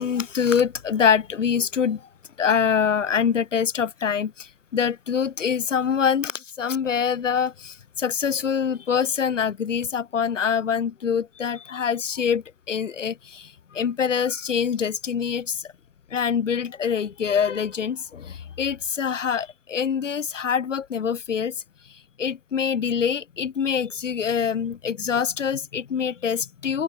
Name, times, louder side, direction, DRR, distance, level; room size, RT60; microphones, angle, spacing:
voice 1, 0.0-2.1 2.4-15.7 16.1-21.5 21.9-26.8, left 7 dB, 85° left, 0.7 m, -25 dB
open air
figure-of-eight pair, 115°, 36 cm